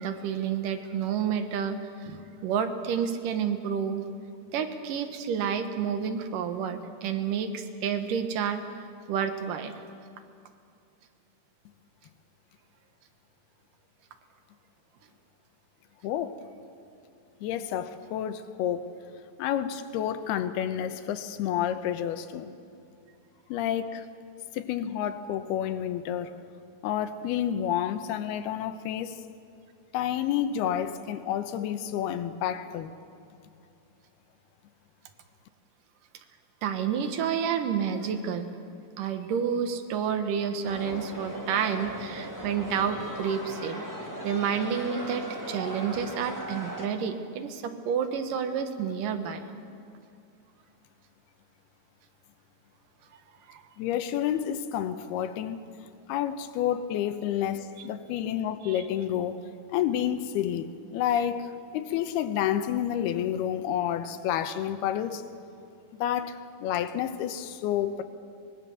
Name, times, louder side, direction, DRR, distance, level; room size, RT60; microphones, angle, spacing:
voice 1, 0.0-4.1 4.5-8.6 9.1-9.8 36.6-38.5 39.0-43.9 44.2-49.4 53.5-53.6 58.6-58.8, right 7 dB, 65° right, 2.6 m, -30 dB
voice 2, 16.0-16.4 17.4-18.9 19.4-22.5 23.5-24.0 24.5-26.3 26.8-29.2 29.9-32.9 53.8-55.6 56.1-65.2 66.0-68.0, left 10 dB, 80° left, 2.8 m, -29 dB
sound 1, 40.6-46.9, right 1 dB, 20° right, 0.5 m, -38 dB
23.5 x 21.0 x 7.1 m
omnidirectional pair, 4.6 m